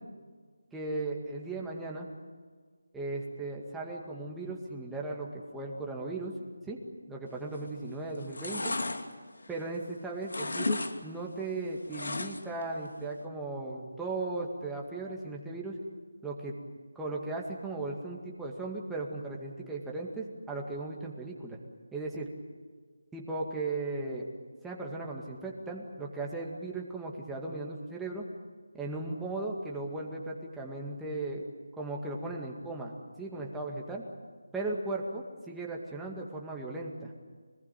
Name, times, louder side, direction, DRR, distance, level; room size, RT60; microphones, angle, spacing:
voice 1, 0.7-2.1 2.9-6.3 6.7-6.8 7.1-8.7 9.5-15.8 16.2-16.5 17.0-21.6 21.9-22.3 23.1-24.3 24.6-28.2 28.7-31.5 31.8-32.9 33.2-34.0 34.5-37.1, right 2 dB, 5° right, -2 dB, 2.1 m, -37 dB
sound 1, 7.5-7.8 8.1-9.9 10.2-10.9 11.2-12.6 13.0-13.1, left 2 dB, 75° left, 2.6 m, -34 dB
26.0 x 20.0 x 9.2 m, 1.6 s
figure-of-eight pair, 170°, 0 cm